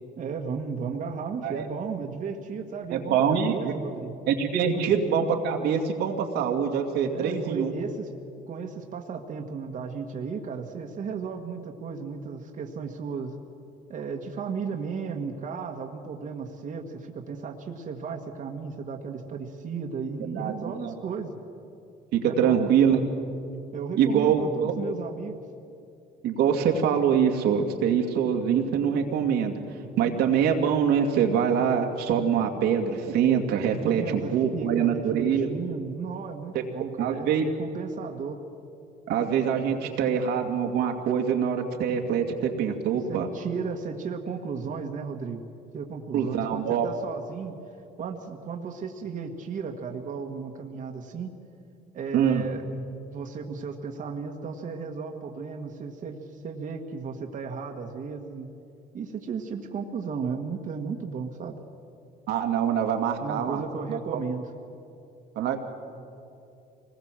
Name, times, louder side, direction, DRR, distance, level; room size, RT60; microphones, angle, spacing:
voice 1, 0.2-4.1 4.7-4.9 7.1-8.1 8.5-13.3 13.9-21.3 22.3-23.1 23.7-25.4 33.9-38.4 39.7-40.2 43.1-45.4 45.7-47.5 48.0-51.3 51.9-52.6 53.1-58.5 58.9-61.6 63.2-64.5, right 5 dB, 50° right, 3 dB, 1.7 m, -34 dB
voice 2, 2.9-3.7 4.3-7.7 20.3-20.5 20.8-20.9 22.1-23.0 24.0-24.7 26.2-29.6 30.0-35.5 37.0-37.4 39.1-43.3 46.1-46.9 52.1-52.4 62.3-63.6 63.9-64.0 65.4-65.6, right 7 dB, 85° right, 2 dB, 2.4 m, -24 dB
25.0 x 20.0 x 7.6 m, 2.7 s
cardioid pair, 110°, 17 cm